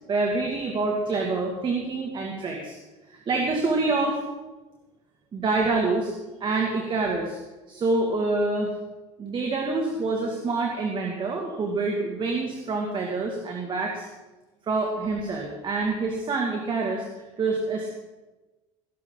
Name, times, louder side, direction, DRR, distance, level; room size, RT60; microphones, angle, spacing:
voice 1, 0.1-2.8 3.1-4.2 5.3-6.1 6.4-7.4 7.7-8.7 9.2-14.1 14.7-17.1 17.4-17.9, right 3 dB, 35° right, 1 dB, 2.3 m, -26 dB
20.0 x 11.0 x 4.0 m, 1.1 s
supercardioid pair, 100°, 13 cm